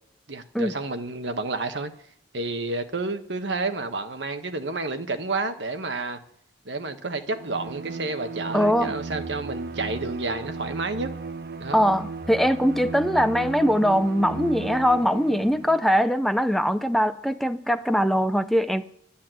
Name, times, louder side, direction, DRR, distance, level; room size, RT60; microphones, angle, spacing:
voice 1, 0.3-1.9 2.3-6.2 6.6-11.1 11.6-11.8, right 3 dB, 75° right, 1.3 m, -30 dB
Bowed string instrument, 7.3-15.8, right 4 dB, 60° right, 0.7 m, -35 dB
voice 2, 8.5-8.9 11.7-18.8, equal, ahead, 0.5 m, -22 dB
12.0 x 8.6 x 7.7 m
head